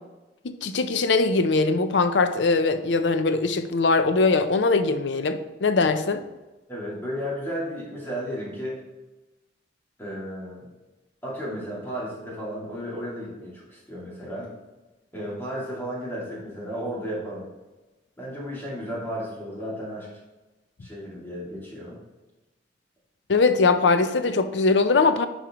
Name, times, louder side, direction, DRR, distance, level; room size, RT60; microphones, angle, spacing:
voice 1, 0.4-6.2 23.3-25.3, left 3 dB, 80° left, 10 dB, 0.5 m, -21 dB
voice 2, 6.7-8.8 10.0-10.7 11.2-14.5 15.1-17.5 18.2-20.1 20.8-22.0, equal, 10° left, -6 dB, 2.3 m, -33 dB
10.5 x 4.8 x 3.0 m, 1.1 s
head